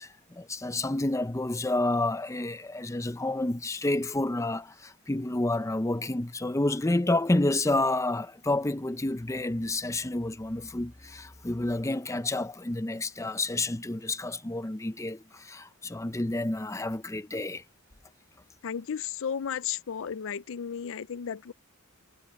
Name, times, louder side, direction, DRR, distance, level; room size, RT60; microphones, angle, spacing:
voice 1, 0.0-17.6, left 2 dB, 15° left, 0.5 m, -29 dB
voice 2, 18.6-21.5, left 7 dB, 60° left, 0.5 m, -34 dB
head